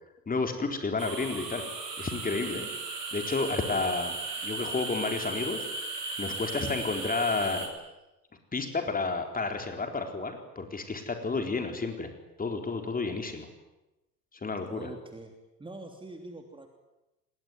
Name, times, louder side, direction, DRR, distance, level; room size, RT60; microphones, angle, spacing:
voice 1, 0.3-1.7 2.0-2.7 3.1-4.2 4.4-5.7 6.2-7.7 8.5-12.1 12.4-13.5 14.3-14.9, left 3 dB, 15° left, 5 dB, 4.1 m, -31 dB
sound 1, 1.0-7.7, right 3 dB, 80° right, 5.0 m, -36 dB
voice 2, 14.7-15.3 15.6-16.7, right 2 dB, 10° right, 4 dB, 3.2 m, -44 dB
28.5 x 21.0 x 9.5 m, 0.98 s
figure-of-eight pair, 75°, 48 cm